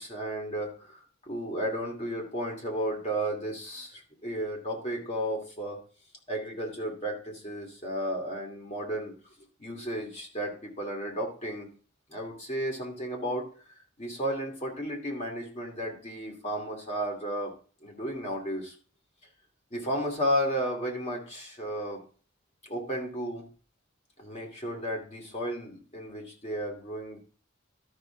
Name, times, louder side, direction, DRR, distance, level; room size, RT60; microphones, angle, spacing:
voice 1, 0.0-5.8 6.3-9.1 9.6-11.7 12.1-13.5 14.0-17.5 17.8-18.7 19.7-22.0 22.6-23.5 24.2-27.2, equal, 35° left, 1 dB, 2.5 m, -33 dB
12.5 x 5.9 x 3.8 m, 0.40 s
head